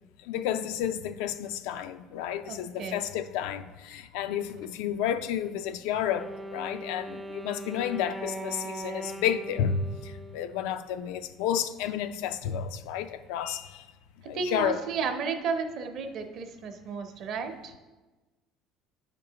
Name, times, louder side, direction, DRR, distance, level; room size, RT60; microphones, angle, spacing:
voice 1, 0.2-13.9 14.3-14.8, left 9 dB, 90° left, 0.3 m, -31 dB
voice 2, 2.4-3.0 14.2-17.7, right 5 dB, 50° right, 0.7 m, -33 dB
Wind instrument woodwind instrument, 6.1-11.1, right 1 dB, 5° right, 0.4 m, -40 dB
8.7 x 5.2 x 2.8 m
cardioid pair, 145°, 0 cm